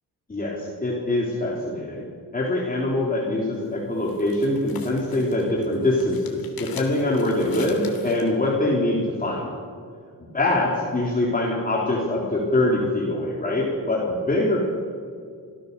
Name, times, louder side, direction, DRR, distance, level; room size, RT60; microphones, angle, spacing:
voice 1, 0.3-2.0 2.3-9.5 10.3-14.6, left 1 dB, 25° left, -3 dB, 3.6 m, -24 dB
sound 1, 3.5-8.3, left 5 dB, 75° left, 3.2 m, -43 dB
26.0 x 15.5 x 6.9 m, 2.2 s
cardioid pair, 115°, 36 cm